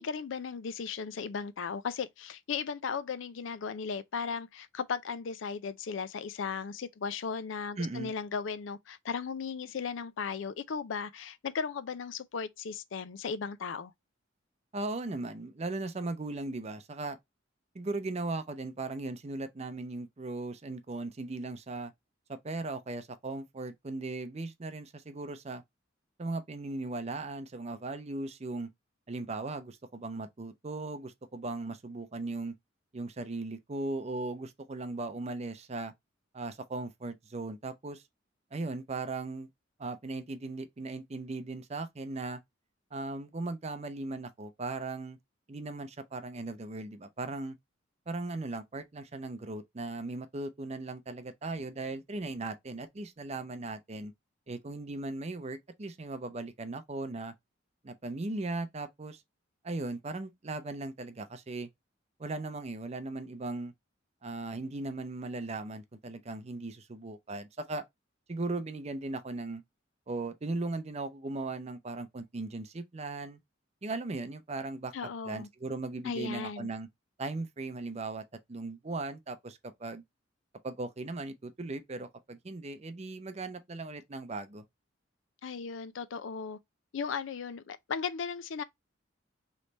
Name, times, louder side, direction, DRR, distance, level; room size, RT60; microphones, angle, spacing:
voice 1, 0.0-13.9 74.9-75.5 76.0-76.7 85.4-86.6 86.9-88.6, left 6 dB, 70° left, 0.4 m, -36 dB
voice 2, 7.8-8.1 14.7-17.2 17.7-21.9 22.3-25.6 26.2-28.7 29.1-32.5 32.9-35.9 36.3-38.0 38.5-39.5 39.8-42.4 42.9-45.2 45.5-47.6 48.1-54.1 54.5-57.3 57.8-59.2 59.6-61.7 62.2-63.7 64.2-67.8 68.3-69.6 70.1-73.4 73.8-76.9 77.2-78.2 78.5-80.0 80.6-84.6, right 2 dB, 35° right, 0.6 m, -38 dB
3.3 x 3.2 x 3.9 m
head